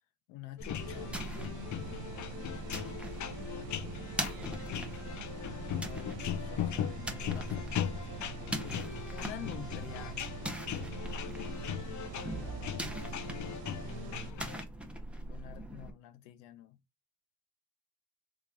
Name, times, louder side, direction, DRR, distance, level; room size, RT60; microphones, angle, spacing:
voice 1, 0.3-1.2 5.7-10.3 13.6-14.7 15.3-16.8, left 12 dB, 85° left, 0.6 m, -49 dB
sound 1, 0.6-14.6, left 10 dB, 40° left, 0.5 m, -39 dB
sound 2, 0.6-15.9, right 1 dB, ahead, 0.7 m, -42 dB
sound 3, 0.8-14.3, right 7 dB, 70° right, 0.7 m, -45 dB
voice 2, 2.6-5.2 11.8-12.7, right 5 dB, 45° right, 1.0 m, -57 dB
3.2 x 2.4 x 3.5 m
supercardioid pair, 60°, 47 cm